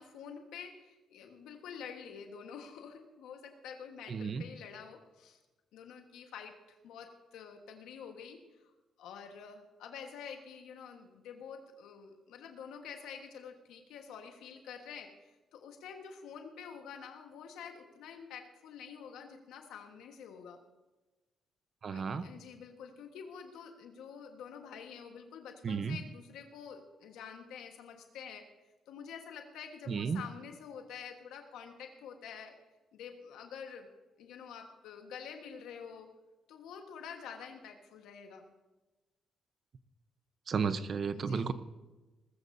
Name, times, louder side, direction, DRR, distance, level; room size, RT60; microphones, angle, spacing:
voice 1, 0.0-5.4 5.7-8.7 9.0-15.1 15.5-20.6 21.9-28.5 28.9-32.6 32.9-33.9 34.2-36.2 36.5-38.4 41.1-41.5, left 7 dB, 85° left, 4 dB, 1.4 m, -48 dB
voice 2, 4.1-4.4 21.8-22.3 25.6-26.0 29.9-30.2 40.5-41.5, right 5 dB, 50° right, 12 dB, 0.8 m, -33 dB
19.5 x 14.5 x 2.7 m, 1.1 s
cardioid pair, 90°, 0 cm